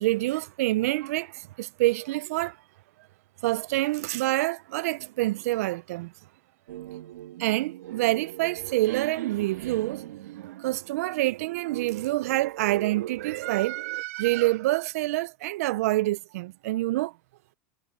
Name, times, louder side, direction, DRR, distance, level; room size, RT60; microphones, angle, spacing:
voice 1, 0.0-2.6 3.4-6.1 7.4-10.0 10.3-17.1, right 18 dB, 65° right, 0.5 m, -27 dB
sound 1, 6.7-14.0, right 14 dB, 80° right, 1.5 m, -39 dB
supercardioid pair, 145°, 9 cm